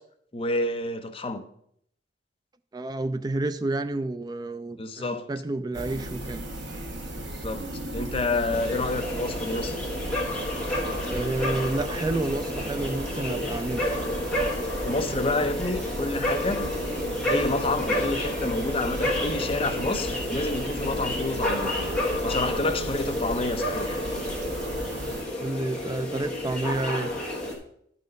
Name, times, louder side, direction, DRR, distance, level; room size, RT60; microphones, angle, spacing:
voice 1, 0.3-1.4 4.8-5.3 7.3-9.8 14.8-16.7 17.2-21.7 22.2-24.0, left 2 dB, 30° left, 0.6 m, -29 dB
voice 2, 2.7-6.4 11.0-13.8 25.4-27.1, right 2 dB, 20° right, 0.4 m, -30 dB
sound 1, 5.7-25.2, right 1 dB, 80° right, 1.4 m, -36 dB
sound 2, 8.5-27.5, left 1 dB, 5° left, 1.5 m, -30 dB
11.0 x 4.2 x 5.2 m
head